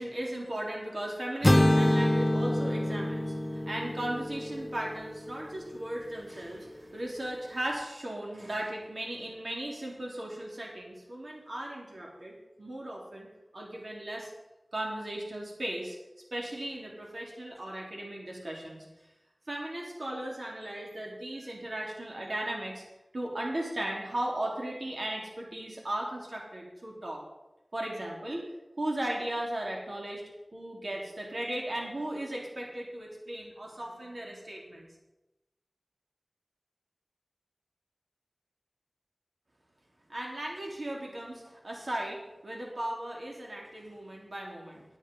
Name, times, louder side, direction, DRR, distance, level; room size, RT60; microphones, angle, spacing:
voice 1, 0.0-13.3 13.5-14.3 14.7-16.0 16.3-18.9 19.5-22.8 23.1-27.2 27.7-28.4 28.8-34.9 40.1-44.8, right 1 dB, 70° right, -2 dB, 3.5 m, -37 dB
sound 1, 1.4-5.5, left 1 dB, 35° left, 0.9 m, -26 dB
11.0 x 9.9 x 5.5 m, 0.97 s
wide cardioid pair, 45°, 0 cm